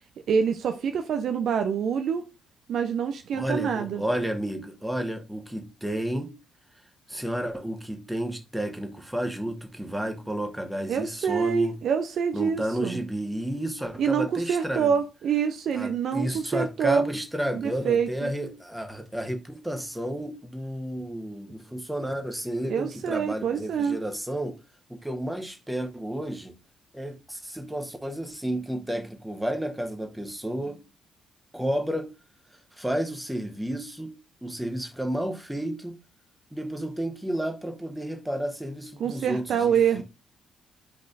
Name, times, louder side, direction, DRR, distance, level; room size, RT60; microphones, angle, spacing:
voice 1, 0.3-2.3 2.7-4.0 10.9-13.0 14.0-17.1 17.5-18.3 22.7-24.0 39.0-40.0, right 7 dB, 55° right, 0.6 m, -26 dB
voice 2, 3.3-6.4 7.1-11.7 12.3-15.0 15.7-24.6 24.9-26.5 26.9-30.8 31.5-32.1 32.8-34.1 34.4-36.0 36.5-40.0, right 1 dB, 5° right, 1.3 m, -31 dB
8.6 x 5.0 x 2.6 m
figure-of-eight pair, 40°, 0 cm